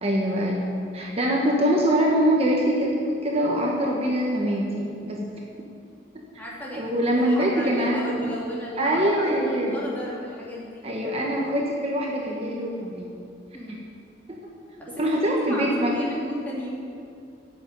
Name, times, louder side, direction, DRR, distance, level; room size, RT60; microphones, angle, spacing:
voice 1, 0.0-5.2 6.8-8.1 8.8-9.9 10.8-13.2 14.3-14.4 15.0-16.0, equal, 35° right, -2 dB, 1.3 m, -24 dB
voice 2, 6.4-10.9 13.5-13.9 14.8-16.7, equal, 10° left, -6 dB, 2.8 m, -34 dB
9.7 x 7.7 x 9.0 m, 2.5 s
head